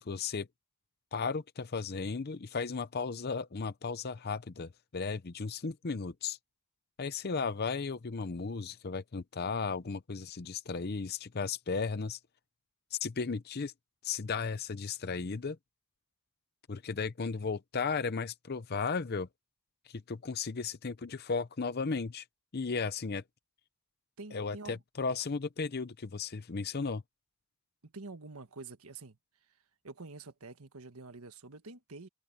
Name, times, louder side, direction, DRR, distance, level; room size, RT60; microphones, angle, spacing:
voice 1, 0.0-0.5 1.1-6.4 7.0-12.2 12.9-13.7 14.0-15.6 16.7-19.3 19.9-22.2 22.5-23.2 24.3-27.0, left 5 dB, 45° left, 0.7 m, -35 dB
voice 2, 24.2-24.8 27.8-29.2 29.8-32.1, right 3 dB, 80° right, 1.5 m, -47 dB
head